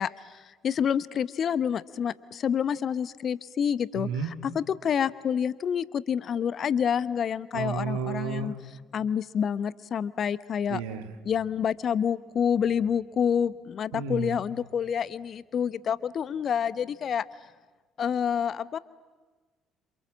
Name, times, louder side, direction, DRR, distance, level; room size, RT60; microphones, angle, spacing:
voice 1, 0.0-8.5 8.9-10.8 11.2-17.2 18.0-18.8, left 8 dB, 45° left, 17 dB, 0.9 m, -28 dB
voice 2, 3.9-4.3 7.5-8.5 10.7-11.1 13.9-14.4, right 6 dB, 70° right, 7 dB, 2.1 m, -32 dB
27.5 x 27.5 x 7.4 m, 1.3 s
figure-of-eight pair, 50°, 0 cm